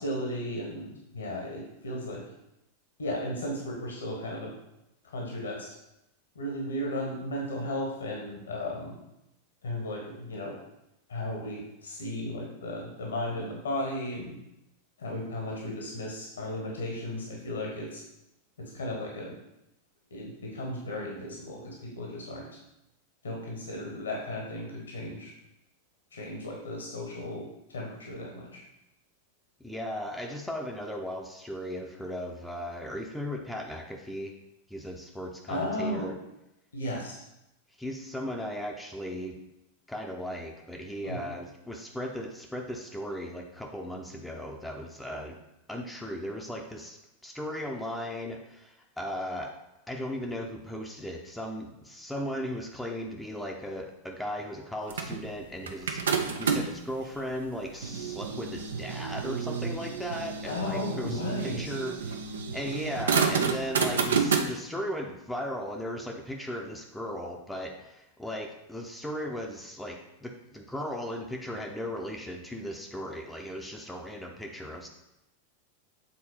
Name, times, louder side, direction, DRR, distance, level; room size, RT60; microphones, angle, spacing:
voice 1, 0.0-2.2 3.0-4.5 5.0-5.7 6.3-9.0 9.6-10.6 11.1-14.4 15.0-18.0 18.6-19.4 20.1-22.5 23.2-25.3 26.1-28.6 35.5-36.1 36.7-37.2 41.0-41.2 60.5-61.7, left 1 dB, 70° left, -1 dB, 1.3 m, -35 dB
voice 2, 29.6-34.3 34.7-36.2 37.8-39.4 39.9-45.4 45.7-49.5 49.9-62.2 62.5-74.9, equal, 5° left, 1 dB, 0.7 m, -37 dB
sound 1, 54.9-56.8 57.4-64.4, right 6 dB, 65° right, 0.6 m, -30 dB
7.4 x 4.1 x 4.3 m, 0.87 s
figure-of-eight pair, 90°, 0 cm